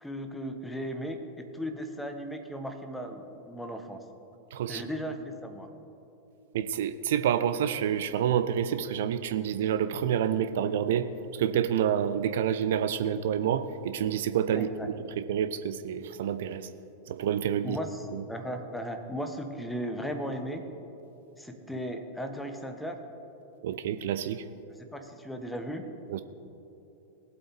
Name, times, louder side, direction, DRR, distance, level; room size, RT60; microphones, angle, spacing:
voice 1, 0.0-4.0 4.7-5.7 14.5-14.9 17.6-18.0 18.3-20.6 21.4-23.0 24.7-25.9, equal, 5° left, 6 dB, 1.0 m, -36 dB
voice 2, 4.5-4.8 6.5-11.1 11.3-16.7 17.1-17.8 18.1-18.2 23.6-24.5 26.1-26.2, right 9 dB, 55° right, 11 dB, 0.4 m, -28 dB
18.5 x 7.9 x 3.5 m, 3.0 s
figure-of-eight pair, 90°, 0 cm